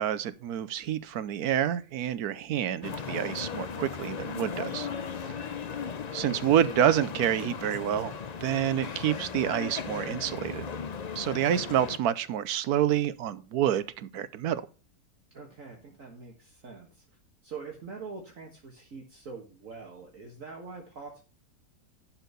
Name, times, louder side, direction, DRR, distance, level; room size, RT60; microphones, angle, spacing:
voice 1, 0.0-4.9 6.1-8.1 8.4-10.7 11.2-14.6, right 10 dB, 75° right, 1.2 m, -28 dB
sound 1, 2.8-12.0, left 6 dB, 70° left, 0.3 m, -37 dB
voice 2, 4.7-5.7 15.3-17.0 17.4-21.2, right 4 dB, 55° right, 1.9 m, -44 dB
11.5 x 4.6 x 6.7 m
omnidirectional pair, 1.7 m